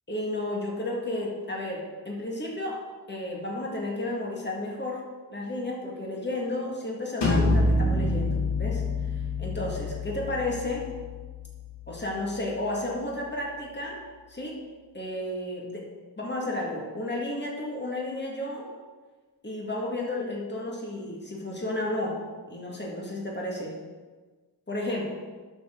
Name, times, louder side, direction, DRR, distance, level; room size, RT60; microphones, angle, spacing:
voice 1, 0.1-2.8 3.1-8.8 9.1-10.9 11.9-14.0 14.3-14.6 14.9-15.8 16.2-18.7 19.4-22.2 22.5-23.8 24.7-25.1, left 1 dB, 25° left, -2 dB, 2.1 m, -32 dB
sound 1, 7.2-12.8, left 2 dB, 80° left, 2.0 m, -28 dB
11.0 x 6.3 x 3.9 m, 1.4 s
wide cardioid pair, 85°, 41 cm